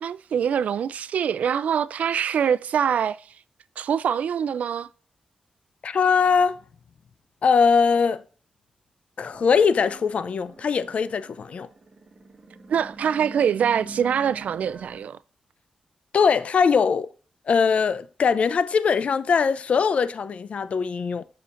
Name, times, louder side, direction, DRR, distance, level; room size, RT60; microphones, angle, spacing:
voice 1, 0.0-3.3 3.8-4.9 12.7-15.2, right 8 dB, 75° right, 0.3 m, -24 dB
voice 2, 5.8-6.6 7.4-8.2 9.2-11.7 16.1-17.1 17.5-21.2, left 5 dB, 60° left, 0.5 m, -21 dB
sound 1, 9.3-15.0, right 3 dB, 45° right, 1.3 m, -44 dB
7.5 x 6.4 x 2.6 m
cardioid pair, 90°, 2 cm